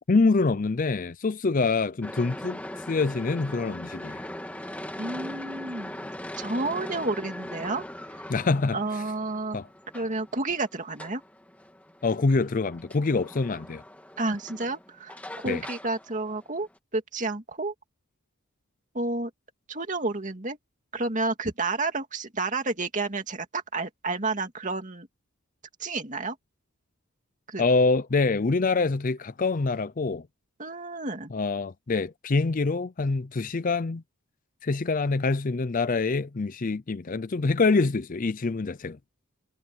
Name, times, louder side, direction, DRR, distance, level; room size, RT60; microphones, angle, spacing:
voice 1, 0.1-2.6 2.9-4.2 8.3-8.8 9.5-9.7 12.0-13.8 15.5-15.6 27.6-30.3 31.3-34.0 34.6-39.0, left 3 dB, 40° left, 0.5 m, -25 dB
sound 1, 2.0-16.8, left 1 dB, 5° left, 2.0 m, -41 dB
voice 2, 5.0-6.0 6.4-7.8 8.1-8.2 8.7-9.6 9.9-11.2 14.2-15.2 15.4-17.7 18.9-19.3 19.7-20.6 20.9-25.1 25.8-26.4 27.5-27.6 30.6-31.3, right 3 dB, 35° right, 2.4 m, -30 dB
head